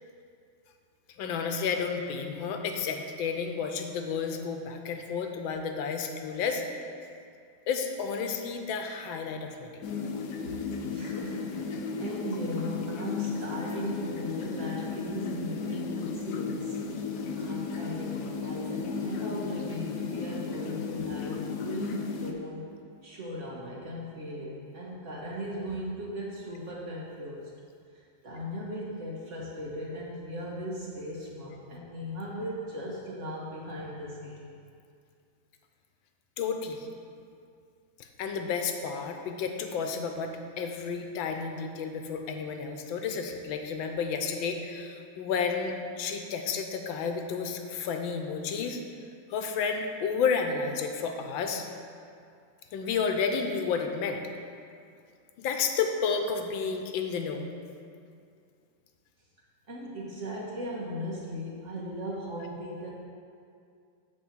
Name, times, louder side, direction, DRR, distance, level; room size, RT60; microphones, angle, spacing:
voice 1, 1.2-6.6 7.7-9.9 36.4-36.9 38.0-48.8 49.3-51.6 52.7-54.2 55.4-57.5, left 5 dB, 90° left, 5 dB, 1.5 m, -31 dB
sound 1, 9.8-22.3, left 5 dB, 65° left, 1.2 m, -34 dB
voice 2, 10.8-11.7 12.0-16.8 17.3-22.6 23.0-27.5 28.2-34.5 59.7-62.9, equal, 40° right, -4 dB, 1.4 m, -38 dB
9.6 x 3.6 x 7.1 m, 2.3 s
omnidirectional pair, 2.1 m